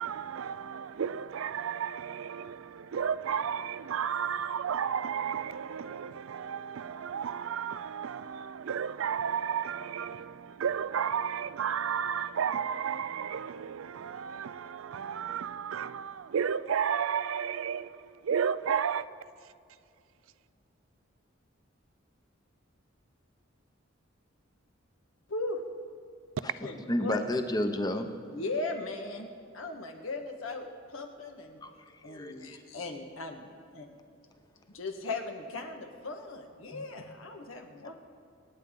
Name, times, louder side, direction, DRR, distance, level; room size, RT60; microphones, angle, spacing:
voice 1, 0.0-19.1, right 7 dB, 85° right, 0.4 m, -33 dB
voice 2, 25.3-25.6 26.6-27.2 28.3-29.3 29.5-31.6 32.0-33.9 34.7-37.9, left 3 dB, 90° left, 1.5 m, -38 dB
voice 3, 26.9-28.1 31.6-31.7 32.0-32.6 36.7-36.8, left 1 dB, 20° left, 0.8 m, -31 dB
25.5 x 9.2 x 3.8 m
head